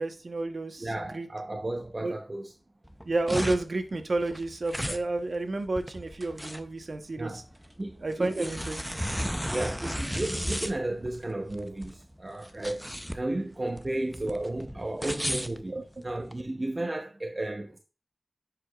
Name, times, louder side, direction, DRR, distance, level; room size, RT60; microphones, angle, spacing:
voice 1, 0.0-1.3 2.0-2.1 3.1-7.4 8.0-8.8 15.7-15.8, right 2 dB, 65° right, 0.9 m, -31 dB
voice 2, 0.8-2.5 7.2-7.4 7.8-8.5 9.5-12.9 13.1-15.7 16.0-17.8, right 1 dB, 35° right, 0.8 m, -33 dB
sound 1, 2.8-16.4, equal, ahead, 0.5 m, -35 dB
10.5 x 4.9 x 2.3 m
wide cardioid pair, 55°, 0 cm